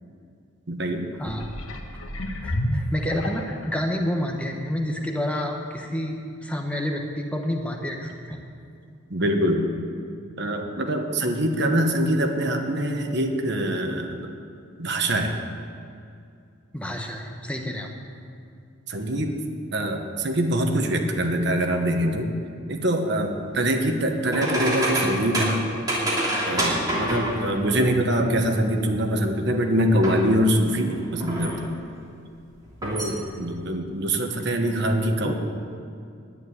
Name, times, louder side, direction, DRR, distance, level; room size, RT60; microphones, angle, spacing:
voice 1, 0.7-1.1 9.1-9.7 10.4-14.2 14.8-15.4 18.9-19.4 19.7-22.3 22.7-25.6 26.5-31.7 32.8-35.3, right 1 dB, 55° right, 4 dB, 1.3 m, -24 dB
sound 1, 1.2-3.8 4.4-4.5, left 1 dB, 85° left, 1.3 m, -30 dB
voice 2, 2.4-8.4 16.7-17.9 35.2-35.3, equal, 5° left, 1 dB, 1.0 m, -29 dB
sound 2, 24.3-27.6 30.0-30.2 30.8-31.7 32.7-33.1, right 1 dB, 20° right, 2.8 m, -26 dB
11.0 x 9.1 x 9.8 m, 2.4 s
head